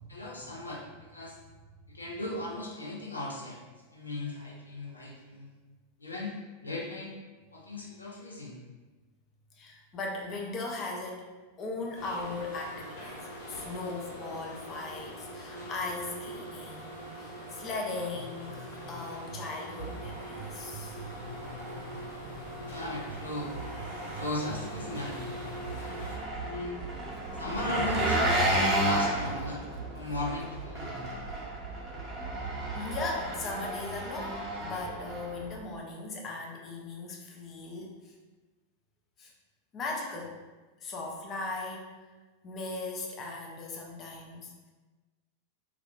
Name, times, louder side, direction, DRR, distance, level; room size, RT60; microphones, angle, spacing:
voice 1, 0.1-1.4 1.9-3.6 3.9-5.5 6.0-6.3 6.6-7.1 7.5-8.6 22.7-23.6 24.0-25.2 26.4-26.9 27.3-28.2 28.5-29.7 29.9-31.2, left 2 dB, 80° left, -3 dB, 0.5 m, -37 dB
voice 2, 9.5-11.3 11.6-21.0 32.7-38.1 39.2-39.3 39.7-40.4 40.8-42.1 42.4-44.7, left 3 dB, 30° left, -1 dB, 0.5 m, -38 dB
sound 1, 11.9-26.2, equal, 65° left, 1.0 m, -43 dB
sound 2, 18.1-19.1 19.3-22.8 23.1-33.2, right 4 dB, 55° right, 0.5 m, -44 dB
Engine, 19.8-35.6, right 1 dB, 20° right, 0.8 m, -34 dB
2.3 x 2.2 x 3.6 m, 1.3 s
figure-of-eight pair, 90°, 0 cm